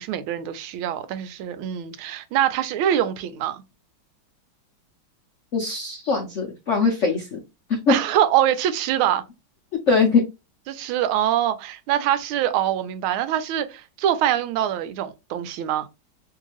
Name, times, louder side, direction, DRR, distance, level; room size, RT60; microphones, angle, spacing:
voice 1, 0.0-3.6 7.9-9.2 10.7-15.9, right 11 dB, 90° right, 1.4 m, -24 dB
voice 2, 5.5-7.4 7.7-7.9 9.9-10.2, left 4 dB, 70° left, 0.7 m, -21 dB
3.2 x 2.7 x 2.9 m
omnidirectional pair, 2.2 m